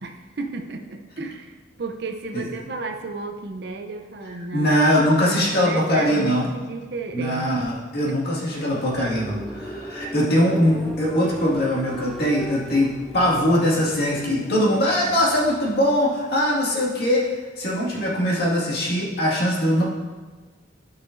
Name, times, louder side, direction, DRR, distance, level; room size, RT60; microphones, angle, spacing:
voice 1, 0.0-4.8 5.3-7.5 8.1-8.2, right 3 dB, 60° right, 4 dB, 0.7 m, -33 dB
voice 2, 4.5-6.5 7.1-17.3 17.6-19.8, equal, 55° left, -5 dB, 2.1 m, -21 dB
sound 1, 8.5-17.0, equal, ahead, 0.4 m, -38 dB
12.5 x 5.6 x 2.7 m, 1.3 s
head